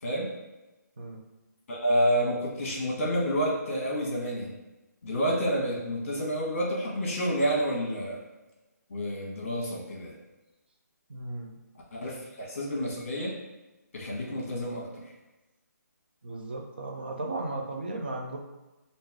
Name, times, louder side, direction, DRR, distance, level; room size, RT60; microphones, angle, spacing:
voice 1, 1.7-4.5 5.0-8.2 8.9-10.1 11.9-13.3 13.9-15.0, equal, 45° left, -3 dB, 1.3 m, -29 dB
voice 2, 11.1-11.6 16.2-18.4, right 2 dB, 35° right, 1 dB, 0.5 m, -35 dB
3.3 x 2.6 x 3.5 m, 1.1 s
hypercardioid pair, 180°, 9 cm